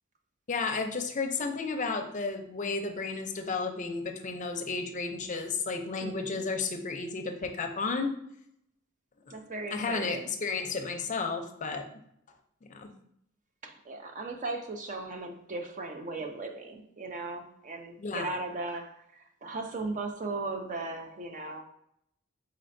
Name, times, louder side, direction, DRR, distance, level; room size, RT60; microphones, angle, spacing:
voice 1, 0.5-8.1 9.3-9.4 9.7-11.9 12.7-12.9 18.0-18.4, left 4 dB, 40° left, 4 dB, 0.5 m, -32 dB
voice 2, 6.0-6.4 9.3-10.3 13.6-21.6, right 3 dB, 40° right, 4 dB, 0.5 m, -37 dB
4.3 x 4.2 x 2.6 m, 0.72 s
head